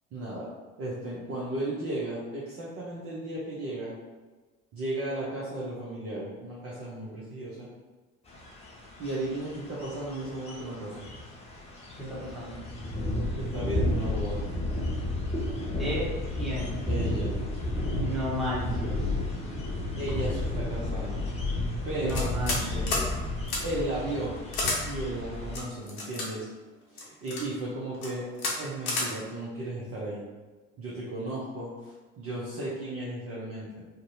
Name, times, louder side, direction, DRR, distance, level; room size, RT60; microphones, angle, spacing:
voice 1, 0.1-0.5 0.8-3.9 4.7-7.7 9.0-11.1 13.4-14.4 16.9-17.3 19.9-21.2 21.8-22.3 23.6-24.3 24.8-26.5 26.9-28.2 28.6-30.3 30.8-33.8, right 1 dB, 35° right, -6 dB, 0.6 m, -35 dB
sound 1, 8.3-25.6, left 1 dB, 15° left, 0.4 m, -32 dB
voice 2, 12.0-12.6 15.7-16.8 17.9-19.1 21.9-22.9, equal, ahead, -9 dB, 1.1 m, -34 dB
sound 2, 22.1-22.6 22.9-23.1 23.5-23.6 24.5-24.8 25.5-26.3 27.0-27.4 27.9-28.1 28.4-28.5 28.9-29.1, left 2 dB, 50° left, 0.8 m, -30 dB
2.6 x 2.1 x 2.6 m, 1.3 s
figure-of-eight pair, 60°, 42 cm